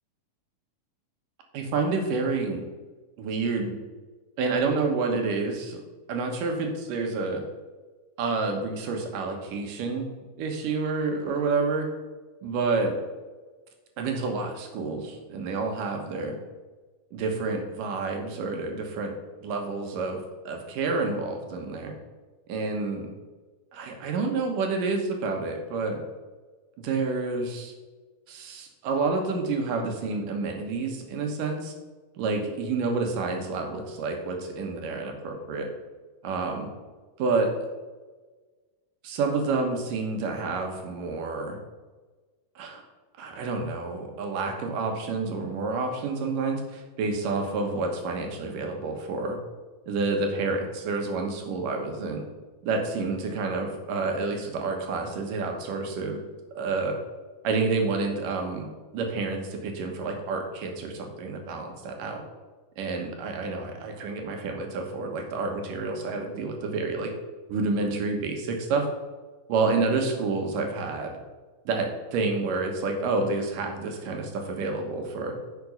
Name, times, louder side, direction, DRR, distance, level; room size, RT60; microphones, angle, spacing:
voice 1, 1.5-2.6 3.2-3.8 4.4-5.8 6.1-7.4 8.2-10.1 10.4-11.9 12.4-13.0 14.0-16.4 17.1-19.1 19.4-21.9 22.5-23.1 23.7-26.0 26.8-27.7 28.3-31.7 32.2-35.7 36.2-36.7 37.2-37.5 39.0-41.6 42.6-42.8 43.2-49.4 49.9-52.2 52.6-56.2 56.5-57.0 57.4-58.7 58.9-62.2 62.8-67.1 67.5-68.9 69.5-71.2 71.7-75.3, right 3 dB, 70° right, 3 dB, 2.6 m, -29 dB
9.6 x 6.0 x 5.4 m, 1.3 s
omnidirectional pair, 4.3 m